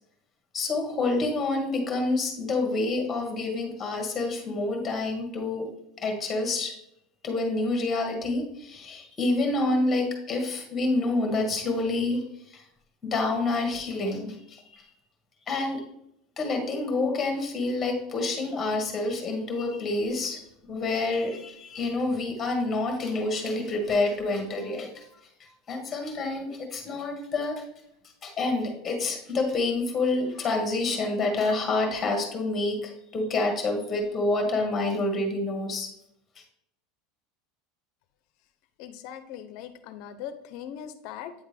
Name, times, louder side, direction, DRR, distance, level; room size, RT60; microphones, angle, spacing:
voice 1, 0.5-5.7 6.0-6.7 7.2-12.2 12.5-12.6 13.0-14.8 15.5-15.8 16.4-20.4 20.7-25.0 25.7-27.6 28.2-35.9, left 2 dB, 20° left, 3 dB, 1.4 m, -28 dB
voice 2, 38.8-41.4, left 9 dB, 55° left, 11 dB, 0.6 m, -40 dB
8.5 x 3.7 x 3.3 m, 0.76 s
supercardioid pair, 150°, 0 cm